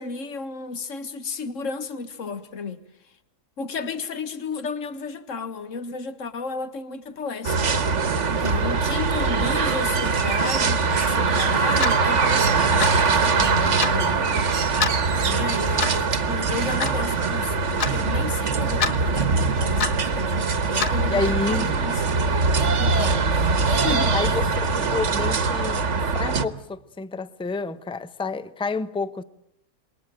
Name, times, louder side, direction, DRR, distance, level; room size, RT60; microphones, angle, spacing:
voice 1, 0.0-2.8 3.6-7.8 8.3-14.7 15.2-24.2, left 4 dB, 55° left, 2.0 m, -33 dB
sound 1, 7.4-26.5, right 4 dB, 50° right, 1.6 m, -22 dB
Bird, 7.9-16.0, right 6 dB, 90° right, 2.0 m, -35 dB
Clock, 11.8-12.0 12.8-13.0 13.8-14.0 14.8-15.0 15.8-16.1 16.8-17.0 17.8-18.0 18.8-19.0 19.8-20.0 20.8-21.0, left 6 dB, 80° left, 1.9 m, -25 dB
voice 2, 21.1-21.9 24.1-25.8 26.1-29.2, left 4 dB, 5° left, 0.6 m, -29 dB
27.5 x 22.5 x 9.0 m
omnidirectional pair, 1.6 m